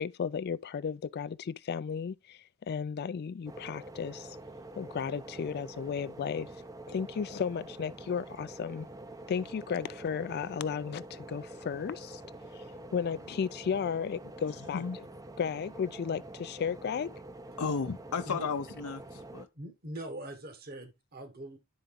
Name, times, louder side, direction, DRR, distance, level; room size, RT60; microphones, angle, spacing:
voice 1, 0.0-4.4 4.8-6.5 6.9-8.9 9.3-12.2 12.5-12.6 12.9-14.8 15.4-17.1, left 6 dB, 45° left, 0.3 m, -34 dB
sound 1, 3.5-19.5, right 1 dB, 15° right, 0.5 m, -46 dB
voice 2, 17.6-19.5, left 5 dB, 85° left, 0.7 m, -34 dB
voice 3, 19.5-21.6, right 1 dB, 45° right, 1.3 m, -42 dB
10.5 x 4.0 x 3.6 m
head